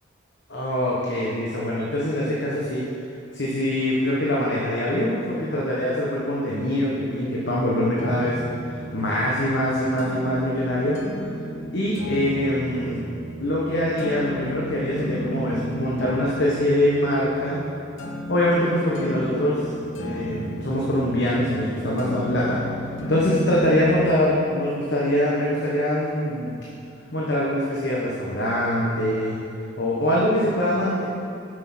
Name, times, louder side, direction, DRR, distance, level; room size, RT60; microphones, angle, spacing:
voice 1, 0.5-2.8 3.3-8.4 8.7-11.0 11.7-13.0 13.4-17.6 18.3-22.6 23.1-26.6 27.1-29.4 29.8-31.0, left 1 dB, 65° left, -5 dB, 1.2 m, -23 dB
sound 1, 8.0-24.0, equal, 90° left, 1.0 m, -34 dB
7.7 x 6.3 x 6.0 m, 2.5 s
head